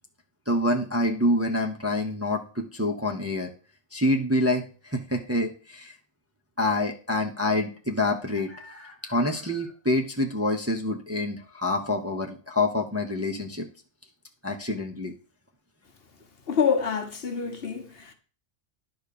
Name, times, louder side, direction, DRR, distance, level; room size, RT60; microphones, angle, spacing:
voice 1, 0.5-3.5 3.9-5.9 6.6-13.7 14.4-15.1, left 1 dB, 15° right, 0.8 m, -27 dB
voice 2, 16.5-18.1, left 6 dB, 55° left, 1.2 m, -26 dB
10.0 x 3.6 x 6.7 m
omnidirectional pair, 1.2 m